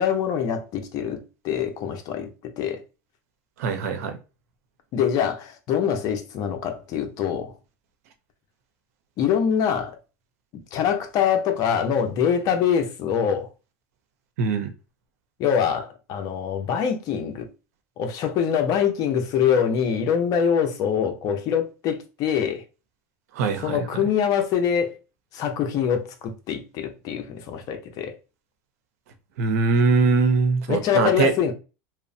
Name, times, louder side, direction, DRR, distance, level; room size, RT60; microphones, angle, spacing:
voice 1, 0.0-2.8 4.9-7.5 9.2-10.0 10.7-13.5 15.4-17.5 18.0-22.6 23.6-24.9 25.3-28.1 30.7-31.5, left 8 dB, 50° left, 0.6 m, -24 dB
voice 2, 3.6-4.2 14.4-14.7 23.3-24.0 29.4-31.3, right 4 dB, 85° right, 0.6 m, -22 dB
2.9 x 2.0 x 2.6 m
supercardioid pair, 125°, 8 cm